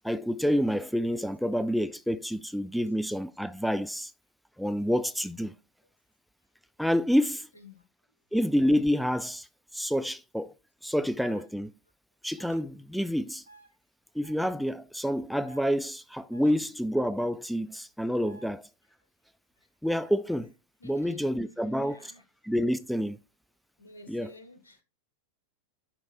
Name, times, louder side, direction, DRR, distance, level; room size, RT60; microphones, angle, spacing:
voice 1, 0.0-4.1 4.6-5.5 6.8-7.5 8.3-9.5 9.7-10.5 10.8-11.7 12.2-13.4 14.2-18.7 19.8-20.5 20.8-22.1 22.4-23.2 24.1-24.3, equal, ahead, 0.3 m, -28 dB
sound 1, 11.2-11.4 12.4-12.6 13.5-13.7 14.2-14.5 15.4-15.6 16.3-16.6 18.2-18.5 19.8-20.1, right 3 dB, 65° right, 1.6 m, -53 dB
voice 2, 20.8-22.2 23.8-24.8, left 2 dB, 75° left, 1.6 m, -52 dB
10.5 x 4.6 x 2.6 m
figure-of-eight pair, 90°, 0 cm